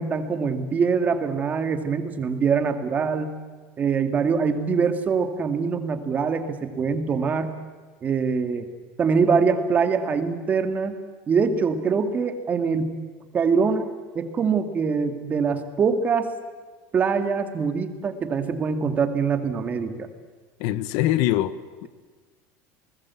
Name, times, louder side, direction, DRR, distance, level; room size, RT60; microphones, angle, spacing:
voice 1, 0.0-3.3 3.8-7.6 8.0-8.7 9.0-11.0 11.3-13.0 13.3-13.9 14.1-16.3 16.9-20.1, right 5 dB, 25° right, 2.0 m, -23 dB
voice 2, 20.6-21.9, left 13 dB, 65° left, 1.1 m, -24 dB
29.0 x 20.0 x 8.4 m
cardioid pair, 160°, 7 cm